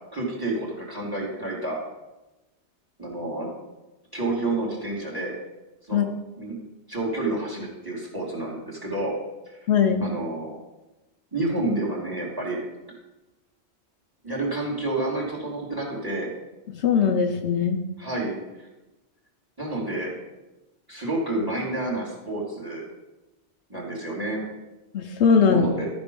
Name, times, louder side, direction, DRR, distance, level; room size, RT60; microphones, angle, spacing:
voice 1, 0.1-1.8 3.0-3.5 4.1-5.3 5.9-6.0 6.4-6.5 6.9-9.1 9.5-9.6 10.0-10.5 11.3-12.6 14.2-16.3 18.0-18.7 19.6-20.1 20.9-22.8 23.7-24.4 25.5-25.9, right 2 dB, 20° right, -2 dB, 2.5 m, -29 dB
voice 2, 9.7-10.1 16.8-17.8 24.9-25.7, left 6 dB, 75° left, 4 dB, 1.0 m, -20 dB
13.0 x 5.2 x 5.3 m, 1.1 s
omnidirectional pair, 1.2 m